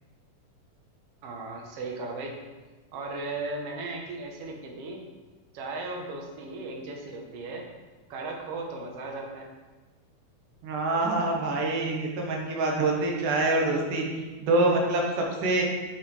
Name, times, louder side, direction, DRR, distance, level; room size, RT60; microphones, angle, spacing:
voice 1, 1.2-2.4 2.9-5.0 5.5-7.6 8.1-9.5, right 3 dB, 60° right, 1 dB, 1.7 m, -36 dB
voice 2, 10.6-14.1 14.4-15.6, right 2 dB, 80° right, 0 dB, 2.8 m, -25 dB
7.9 x 7.4 x 3.3 m, 1.3 s
omnidirectional pair, 3.8 m